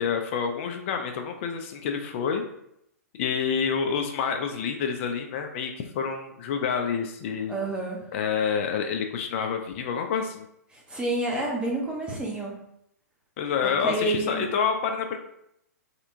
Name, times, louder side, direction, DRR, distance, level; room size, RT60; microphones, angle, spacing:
voice 1, 0.0-2.4 3.2-7.5 8.1-10.5 13.4-15.2, left 6 dB, 45° left, 4 dB, 0.4 m, -28 dB
voice 2, 7.5-8.0 10.7-12.5 13.6-14.5, right 2 dB, 10° right, -3 dB, 0.8 m, -29 dB
3.3 x 2.8 x 2.6 m, 0.77 s
hypercardioid pair, 120°, 9 cm